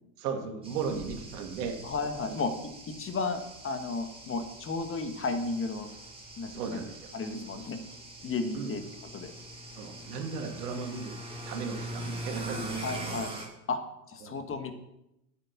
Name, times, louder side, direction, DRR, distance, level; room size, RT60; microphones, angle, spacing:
voice 1, 0.2-1.8 2.3-2.4 6.5-7.0 8.5-8.7 9.8-11.2 11.5-13.2 14.2-14.4, right 5 dB, 80° right, 4 dB, 2.4 m, -36 dB
sound 1, 0.6-13.5, right 2 dB, 10° right, 3.5 m, -42 dB
voice 2, 1.8-5.9 6.4-6.8 7.1-7.8 8.2-8.8 9.1-9.3 12.8-13.3 13.7-13.8 14.1-14.7, left 3 dB, 30° left, 7 dB, 1.6 m, -33 dB
9.9 x 8.3 x 6.1 m, 0.86 s
hypercardioid pair, 100°, 46 cm